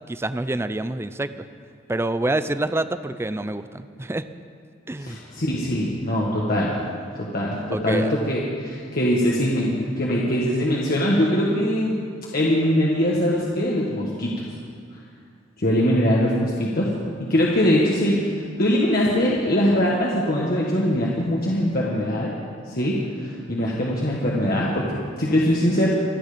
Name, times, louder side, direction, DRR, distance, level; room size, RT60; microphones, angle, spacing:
voice 1, 0.1-1.5 1.9-4.3 4.9-5.2 7.7-8.1, right 2 dB, 15° right, 12 dB, 0.4 m, -27 dB
voice 2, 5.0-6.8 7.2-12.0 12.3-14.3 15.6-16.9 17.3-22.3 22.7-25.9, equal, 55° left, -4 dB, 1.6 m, -22 dB
25.5 x 9.3 x 5.1 m, 2.2 s
head